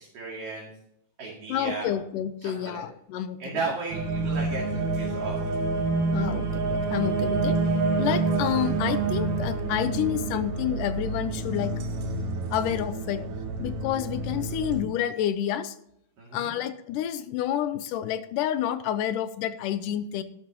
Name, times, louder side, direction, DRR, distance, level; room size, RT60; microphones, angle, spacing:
voice 1, 0.1-0.7 1.2-1.9 2.4-2.8 3.4-5.6 16.2-16.6, right 4 dB, 45° right, -4 dB, 3.2 m, -35 dB
voice 2, 1.5-3.6 6.1-7.6 8.0-11.7 12.5-13.2 13.6-15.8 16.3-20.2, left 10 dB, 80° left, 12 dB, 2.1 m, -29 dB
sound 1, 3.9-14.8, right 3 dB, 70° right, 2.7 m, -28 dB
13.0 x 11.5 x 2.9 m, 0.75 s
omnidirectional pair, 4.1 m